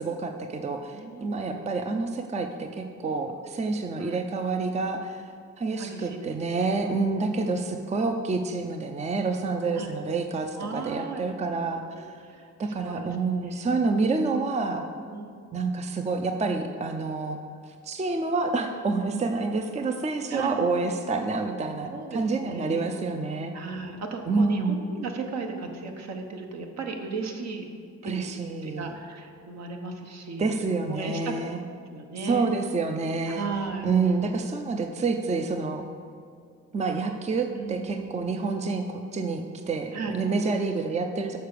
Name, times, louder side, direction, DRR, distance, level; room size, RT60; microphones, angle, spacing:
voice 1, 0.0-5.2 5.6-12.2 12.6-14.8 15.5-17.4 17.8-23.5 24.3-24.8 28.0-28.9 30.4-31.6 32.2-33.5 33.8-35.8 36.7-41.4, right 3 dB, 25° right, 5 dB, 0.5 m, -28 dB
voice 2, 0.9-1.6 4.0-4.2 5.8-6.8 9.7-9.9 10.6-12.0 12.3-13.6 15.1-15.3 18.9-19.3 20.3-20.6 21.9-22.9 23.5-27.6 28.0-30.6 30.9-31.6 31.9-32.5 33.3-33.9 37.5-38.2 39.9-40.2, right 4 dB, 60° right, 3 dB, 1.1 m, -36 dB
6.5 x 5.7 x 6.7 m, 2.3 s
cardioid pair, 90°, 30 cm